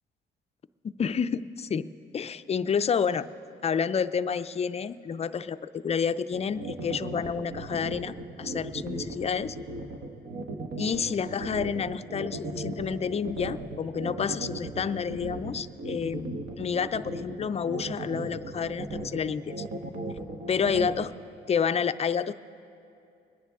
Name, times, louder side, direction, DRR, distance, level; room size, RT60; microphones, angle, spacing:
voice 1, 0.8-1.9 2.1-3.3 3.6-9.6 10.8-19.6 20.5-21.1 21.5-22.3, left 6 dB, 30° left, 13 dB, 0.4 m, -29 dB
sound 1, 6.3-21.0, right 2 dB, 65° right, 1.2 m, -36 dB
23.0 x 10.0 x 3.6 m, 2.6 s
cardioid pair, 90°, 20 cm